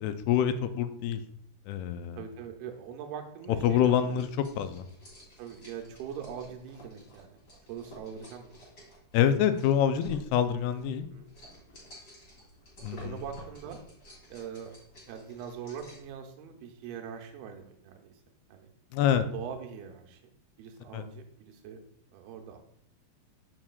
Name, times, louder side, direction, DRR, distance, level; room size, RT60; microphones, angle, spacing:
voice 1, 0.0-1.2 1.7-2.2 3.6-4.3 4.6-4.9 9.1-11.1 12.8-13.2 18.9-19.2 20.9-21.0, left 9 dB, 85° left, 9 dB, 2.5 m, -26 dB
voice 2, 2.2-4.3 5.4-7.4 7.7-8.6 9.9-10.1 11.1-11.3 12.9-13.8 14.3-14.7 15.0-18.1 18.5-18.7 19.3-20.2 20.6-21.8 22.1-22.6, right 8 dB, 90° right, 4 dB, 2.7 m, -42 dB
sound 1, 3.8-16.1, right 1 dB, 30° left, 2.9 m, -52 dB
7.2 x 6.4 x 2.3 m, 0.68 s
omnidirectional pair, 4.5 m